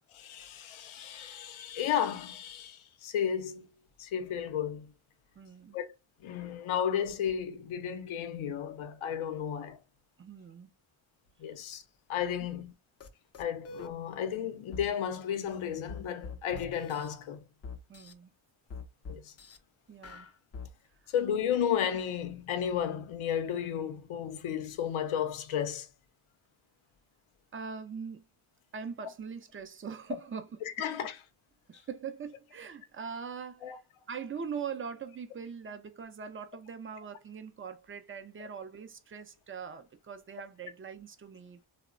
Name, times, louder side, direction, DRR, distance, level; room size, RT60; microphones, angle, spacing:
voice 1, 0.1-3.7 4.0-4.9 5.7-5.8 6.2-9.8 11.4-11.8 12.1-12.7 13.4-17.4 19.1-19.3 21.1-25.9 30.8-31.2 33.6-33.8, left 9 dB, 75° left, 0.7 m, -33 dB
voice 2, 5.4-5.8 10.2-10.7 17.9-18.3 19.9-20.3 21.0-21.1 27.5-28.3 28.7-30.6 31.7-33.8 34.1-41.7, right 6 dB, 25° right, 0.5 m, -42 dB
sound 1, 13.0-13.1 13.3-13.9 14.7-14.9 15.9-17.1 17.6-18.1 18.7-19.6 20.0-20.7, left 4 dB, 30° left, 0.5 m, -43 dB
2.8 x 2.1 x 2.4 m
cardioid pair, 60°, 49 cm